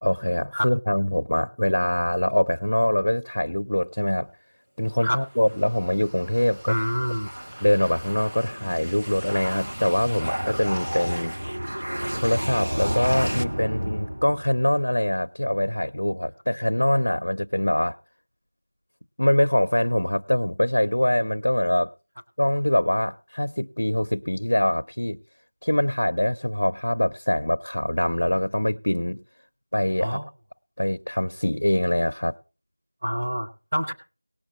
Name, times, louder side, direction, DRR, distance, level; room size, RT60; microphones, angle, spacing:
voice 1, 0.0-4.3 4.8-6.8 7.6-11.3 12.1-18.0 19.2-21.9 22.4-25.2 25.6-29.2 29.7-30.2 30.8-32.3, left 1 dB, 65° left, 0.6 m, -23 dB
sound 1, 5.4-14.7, equal, 50° right, 0.9 m, -32 dB
voice 2, 6.7-7.3 30.0-30.2 33.0-33.9, equal, 20° right, 0.8 m, -26 dB
19.0 x 6.7 x 4.1 m
figure-of-eight pair, 180°, 0 cm